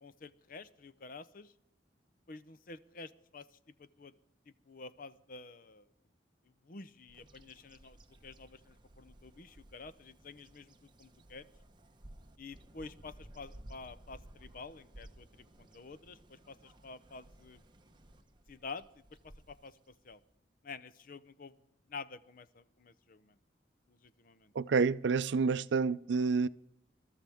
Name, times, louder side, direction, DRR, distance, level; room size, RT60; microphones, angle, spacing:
voice 1, 0.0-1.5 2.3-3.5 3.8-4.1 4.7-5.9 6.6-11.5 12.4-17.6 18.5-20.2 20.6-21.5 21.9-23.4 23.9-24.5, left 4 dB, 50° left, 0.7 m, -49 dB
Bird vocalization bird call bird song, 7.1-20.4, right 1 dB, 25° right, 1.0 m, -57 dB
voice 2, 24.6-26.5, right 4 dB, 80° right, 0.5 m, -29 dB
22.0 x 13.0 x 3.5 m
head